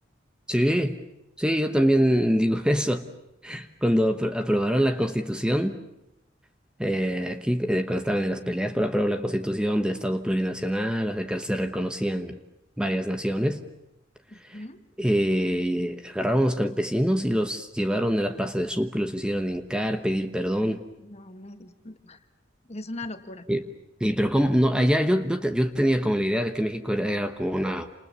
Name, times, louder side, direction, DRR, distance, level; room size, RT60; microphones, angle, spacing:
voice 1, 0.5-1.0 1.4-3.1 3.4-5.8 6.8-12.4 12.8-13.6 14.4-14.6 15.0-20.8 23.5-23.6 24.0-27.9, equal, 5° right, 7 dB, 1.1 m, -25 dB
voice 2, 14.3-14.8 21.0-22.2 22.7-23.5, left 2 dB, 35° left, 8 dB, 1.8 m, -40 dB
29.5 x 27.5 x 6.9 m, 0.89 s
head